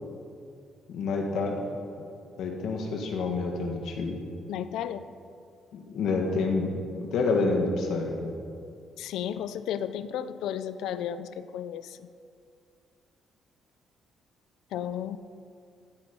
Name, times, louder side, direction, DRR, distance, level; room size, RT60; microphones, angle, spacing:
voice 1, 0.9-1.6 2.4-4.2 5.7-6.7 7.1-8.3, left 3 dB, 65° left, 2 dB, 1.8 m, -28 dB
voice 2, 4.5-5.1 9.0-12.1 14.7-15.2, left 9 dB, 90° left, 13 dB, 0.5 m, -33 dB
15.5 x 9.5 x 5.4 m, 2.4 s
cardioid pair, 175°, 0 cm